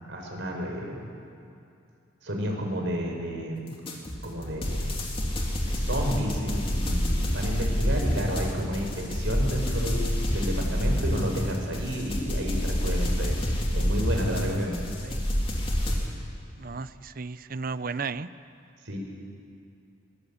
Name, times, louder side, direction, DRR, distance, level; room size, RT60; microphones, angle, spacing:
voice 1, 0.1-1.1 2.2-3.7 4.2-4.9 5.7-10.0 10.3-13.3 13.7-14.8 18.8-19.0, equal, 70° right, 1 dB, 5.2 m, -31 dB
sound 1, 3.9-16.1, equal, 30° left, 3.0 m, -27 dB
voice 2, 16.6-18.3, right 4 dB, 45° right, 14 dB, 0.6 m, -34 dB
21.5 x 19.5 x 8.6 m, 2.6 s
head